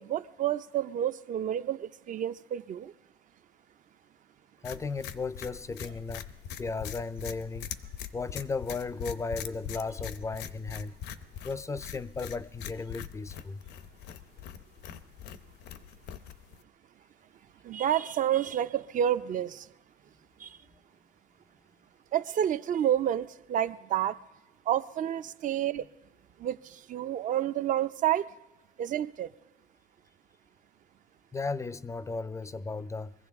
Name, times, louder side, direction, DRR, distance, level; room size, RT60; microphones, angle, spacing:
voice 1, 0.0-2.9 17.6-19.7 20.4-20.6 22.1-24.2 24.7-25.8 26.4-28.3 28.8-29.3, right 10 dB, 50° right, 0.5 m, -29 dB
sound 1, 4.6-16.6, left 9 dB, 85° left, 0.7 m, -42 dB
voice 2, 4.6-6.3 6.6-7.7 8.1-10.9 11.4-13.6 31.3-33.1, left 4 dB, 15° left, 0.4 m, -35 dB
23.0 x 15.0 x 3.5 m
cardioid pair, 110°, 17 cm